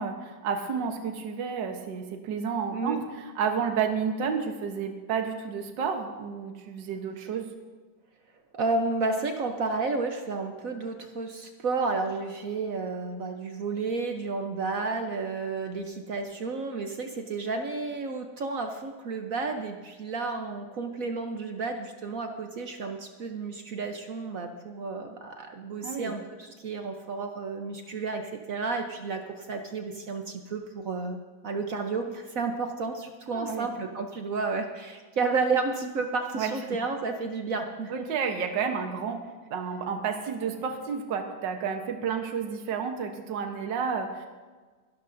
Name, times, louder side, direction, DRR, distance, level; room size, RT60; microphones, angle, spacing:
voice 1, 0.0-7.5 25.8-26.1 33.3-33.7 36.3-36.8 37.9-44.3, right 6 dB, 70° right, 4 dB, 1.7 m, -31 dB
voice 2, 2.7-3.0 8.5-37.9, right 4 dB, 55° right, 4 dB, 1.1 m, -31 dB
23.0 x 12.0 x 2.6 m, 1.4 s
omnidirectional pair, 2.1 m